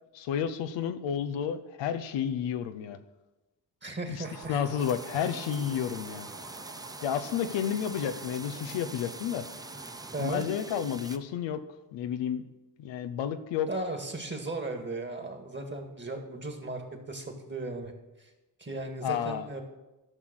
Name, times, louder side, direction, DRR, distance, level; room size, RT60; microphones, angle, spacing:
voice 1, 0.1-3.0 4.5-6.3 7.0-9.5 10.2-11.6 11.9-12.4 12.8-13.7 19.0-19.5, left 8 dB, 90° left, 10 dB, 0.7 m, -31 dB
voice 2, 3.8-4.6 10.1-10.4 13.7-17.9 18.2-18.3 18.6-19.6, right 2 dB, 25° right, 4 dB, 2.1 m, -36 dB
sound 1, 4.2-10.4, right 4 dB, 40° right, 1.7 m, -47 dB
sound 2, 4.8-11.2, right 2 dB, 10° right, 0.6 m, -44 dB
12.0 x 6.1 x 6.2 m, 1.1 s
supercardioid pair, 55°, 43 cm